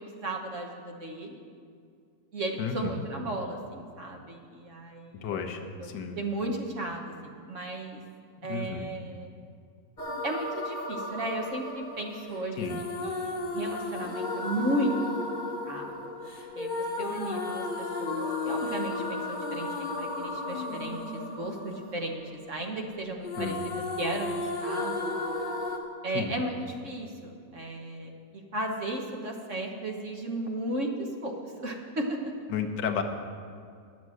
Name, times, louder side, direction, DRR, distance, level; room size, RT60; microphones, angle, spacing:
voice 1, 0.0-1.4 2.3-5.5 5.8-8.0 8.4-9.3 10.2-14.9 15.2-15.4 15.7-16.1 16.6-22.2 22.5-25.1 26.0-32.3, right 1 dB, 50° right, 1 dB, 1.4 m, -35 dB
voice 2, 2.6-3.0 5.2-6.2 8.5-8.9 12.6-12.8 23.4-23.6 26.1-26.3 32.5-33.0, left 6 dB, 80° left, 4 dB, 1.5 m, -32 dB
sound 1, 10.0-22.9 23.2-25.8, left 2 dB, 30° left, 1.2 m, -34 dB
11.0 x 7.4 x 7.7 m, 2.3 s
omnidirectional pair, 1.8 m